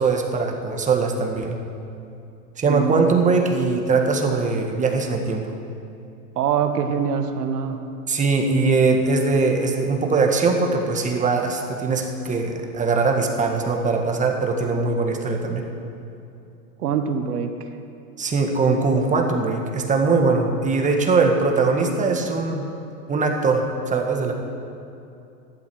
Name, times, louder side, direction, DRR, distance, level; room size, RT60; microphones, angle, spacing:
voice 1, 0.0-1.6 2.6-5.5 8.1-15.6 18.2-22.7 23.1-24.3, right 4 dB, 15° right, 3 dB, 1.6 m, -21 dB
voice 2, 2.6-3.1 6.3-7.8 16.8-17.5, right 7 dB, 80° right, 7 dB, 1.5 m, -24 dB
14.5 x 12.0 x 6.3 m, 2.8 s
hypercardioid pair, 130°, 46 cm